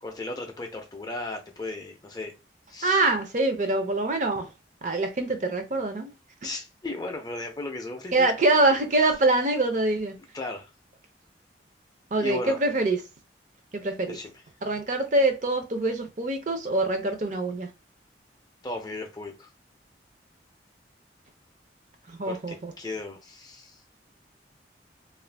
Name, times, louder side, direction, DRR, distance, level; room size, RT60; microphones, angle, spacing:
voice 1, 0.0-2.3 2.7-3.0 6.4-8.3 10.3-10.7 12.2-12.6 14.1-14.3 18.6-19.5 22.2-24.0, left 2 dB, 20° left, 0.4 m, -36 dB
voice 2, 2.8-4.5 4.8-6.1 6.4-6.5 8.1-10.2 12.1-13.0 13.7-14.2 14.6-17.7 22.1-22.7, right 2 dB, 45° right, 0.5 m, -24 dB
2.4 x 2.1 x 3.3 m
head